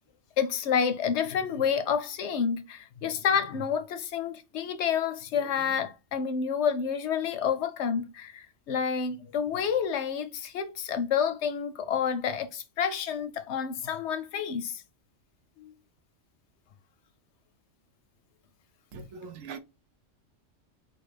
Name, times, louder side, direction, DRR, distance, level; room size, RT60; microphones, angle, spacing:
voice 1, 0.4-14.8 15.6-15.7, left 7 dB, 65° left, 0.8 m, -29 dB
voice 2, 18.9-19.6, right 5 dB, 85° right, 1.0 m, -41 dB
4.6 x 2.3 x 3.3 m
omnidirectional pair, 1.3 m